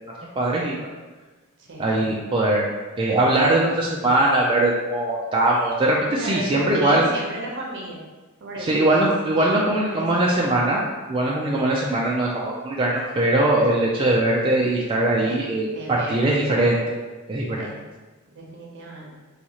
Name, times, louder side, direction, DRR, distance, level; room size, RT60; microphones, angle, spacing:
voice 1, 0.4-0.9 1.8-2.7 3.0-7.1 8.6-10.8 11.1-16.8 17.3-17.7, right 1 dB, 25° right, -4 dB, 0.3 m, -21 dB
voice 2, 1.7-2.1 6.1-8.0 8.4-9.1 9.4-10.3 15.1-15.4 15.7-16.2 17.6-17.8 18.3-19.2, right 1 dB, 60° right, -2 dB, 0.8 m, -34 dB
4.1 x 2.3 x 2.9 m, 1.2 s
head